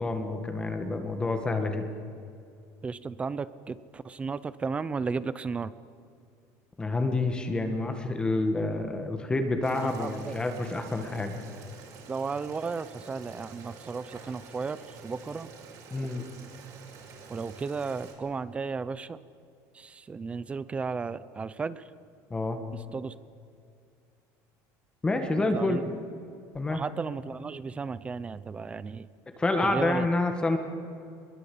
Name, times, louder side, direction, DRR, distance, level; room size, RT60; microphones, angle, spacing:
voice 1, 0.0-1.9 6.8-11.4 15.9-16.2 22.3-22.6 25.0-26.0 26.5-26.8 29.4-30.6, left 2 dB, 10° left, 6 dB, 1.7 m, -28 dB
voice 2, 2.8-5.7 9.8-10.4 12.1-15.5 15.9-16.1 17.3-19.2 19.7-21.9 22.7-23.2 25.5-25.8 26.7-29.1 29.6-30.1, right 4 dB, 15° right, 16 dB, 0.6 m, -34 dB
Boiling, 9.6-18.1, right 4 dB, 50° right, 6.0 m, -48 dB
24.5 x 22.0 x 8.6 m, 2.4 s
cardioid pair, 170°, 8 cm